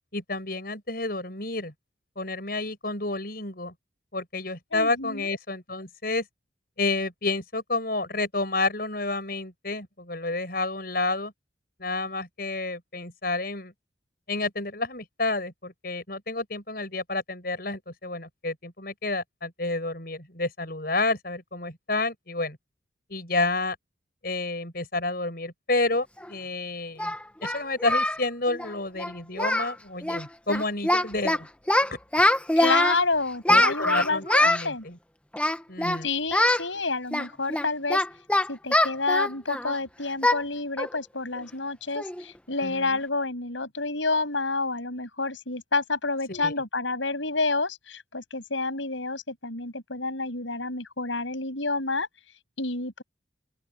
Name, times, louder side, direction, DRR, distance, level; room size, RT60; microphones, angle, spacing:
voice 1, 0.1-1.7 2.2-3.7 4.1-6.3 6.8-11.3 11.8-13.7 14.3-22.6 23.1-23.8 24.2-27.1 27.4-31.5 31.9-32.2 33.5-35.0 35.7-36.1 42.6-43.0 46.3-46.5, left 2 dB, 50° left, 7.2 m, -30 dB
voice 2, 4.7-5.4 32.6-34.8 36.0-38.0 38.5-52.1 52.6-53.0, left 3 dB, 85° left, 7.4 m, -29 dB
Singing, 26.2-26.3 27.0-28.2 28.5-28.7 29.0-29.1 29.4-29.7 30.0-30.2 30.5-31.4 31.7-33.0 33.5-34.7 35.3-36.0 36.3-36.6 37.1-39.8 40.2-40.4 40.8-41.0 41.4-41.5 42.0-42.2, left 1 dB, 5° left, 1.4 m, -23 dB
open air
head